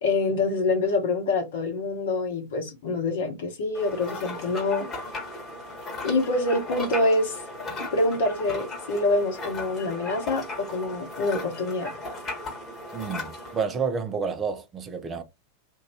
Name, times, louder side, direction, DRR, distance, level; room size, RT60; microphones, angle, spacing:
voice 1, 0.0-4.9 6.0-7.4 7.9-11.9, left 2 dB, 55° left, 0.9 m, -26 dB
sound 1, 3.7-13.6, left 2 dB, 25° left, 1.3 m, -36 dB
voice 2, 12.9-15.2, right 5 dB, 20° right, 0.6 m, -30 dB
2.7 x 2.5 x 3.1 m
figure-of-eight pair, 90°, 0 cm